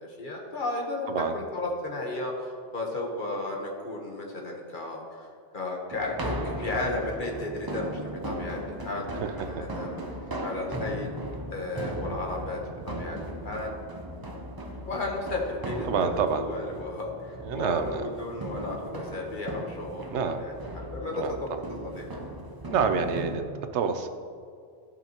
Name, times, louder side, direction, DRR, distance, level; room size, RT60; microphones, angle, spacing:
voice 1, 0.0-5.3 5.5-10.0 10.4-11.1 11.5-12.6 12.9-13.2 13.4-13.7 14.8-16.1 16.4-20.1 20.4-22.0, left 2 dB, 45° left, -1 dB, 1.3 m, -34 dB
sound 1, 5.9-23.4, right 1 dB, 30° right, 0.5 m, -37 dB
voice 2, 9.2-9.6 15.8-16.4 17.4-18.1 20.1-20.4 21.1-21.6 22.7-24.1, right 6 dB, 80° right, 8 dB, 0.9 m, -28 dB
13.5 x 5.6 x 3.0 m, 2.2 s
omnidirectional pair, 1.2 m